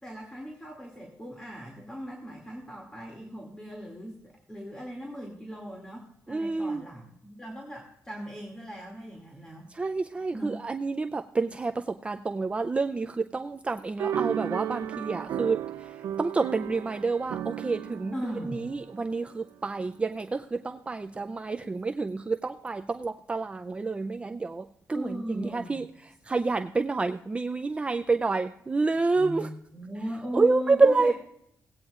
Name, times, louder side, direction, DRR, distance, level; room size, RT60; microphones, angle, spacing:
voice 1, 0.0-9.7 10.3-10.6 18.1-18.6 24.9-25.8 29.2-31.1, equal, 10° left, -1 dB, 2.4 m, -38 dB
voice 2, 6.3-6.8 9.7-29.5 30.3-31.1, right 3 dB, 20° right, 6 dB, 0.4 m, -28 dB
sound 1, 14.0-19.5, right 10 dB, 70° right, 0.5 m, -34 dB
19.0 x 9.0 x 2.4 m, 0.73 s
cardioid pair, 125°, 6 cm